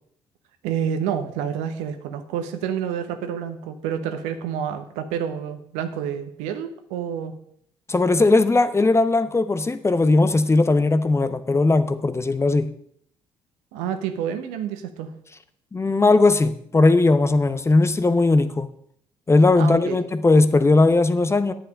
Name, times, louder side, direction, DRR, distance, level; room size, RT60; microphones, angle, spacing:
voice 1, 0.6-7.3 13.7-15.1 19.6-20.0, right 8 dB, 70° right, 9 dB, 0.9 m, -28 dB
voice 2, 7.9-12.7 15.7-18.7 19.3-21.5, left 3 dB, 20° left, 13 dB, 0.8 m, -18 dB
10.0 x 7.8 x 5.2 m, 0.68 s
figure-of-eight pair, 45°, 13 cm